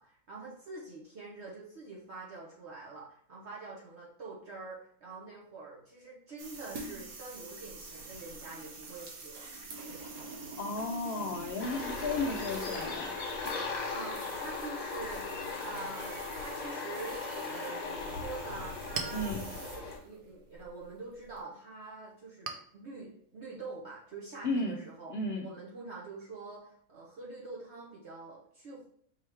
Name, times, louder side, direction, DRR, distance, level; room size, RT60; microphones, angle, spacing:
voice 1, 0.0-9.5 13.9-15.2 15.6-25.2 25.4-28.9, right 3 dB, 50° right, -4 dB, 1.0 m, -45 dB
sound 1, 6.4-21.4, right 3 dB, 70° right, 1.3 m, -47 dB
voice 2, 10.6-13.2 19.1-19.4 24.4-24.8 25.1-25.5, left 2 dB, 90° left, 1 dB, 0.5 m, -34 dB
sound 2, 11.6-20.0, left 4 dB, 65° left, 1.3 m, -38 dB
Chink clink, 18.4-25.5, right 5 dB, 85° right, 0.4 m, -47 dB
4.7 x 3.0 x 3.3 m, 0.62 s
omnidirectional pair, 1.6 m